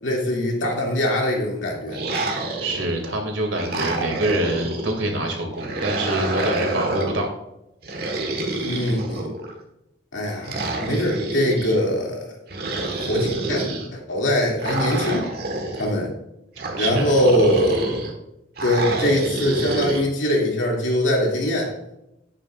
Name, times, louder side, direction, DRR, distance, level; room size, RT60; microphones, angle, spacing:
voice 1, 0.0-2.0 8.5-9.3 10.1-12.3 13.0-13.6 13.9-15.3 15.8-16.1 16.8-17.8 18.6-21.7, left 1 dB, 80° left, -1 dB, 2.7 m, -22 dB
sound 1, 1.9-3.1 3.5-5.0 5.6-7.2 7.8-9.5 10.4-11.8 12.5-13.9 14.6-15.9 16.6-18.1 18.6-20.0, right 2 dB, 55° right, 1.6 m, -28 dB
voice 2, 2.6-7.3 16.6-17.1, right 1 dB, 85° right, 2 dB, 2.5 m, -25 dB
11.0 x 8.7 x 2.6 m, 0.87 s
head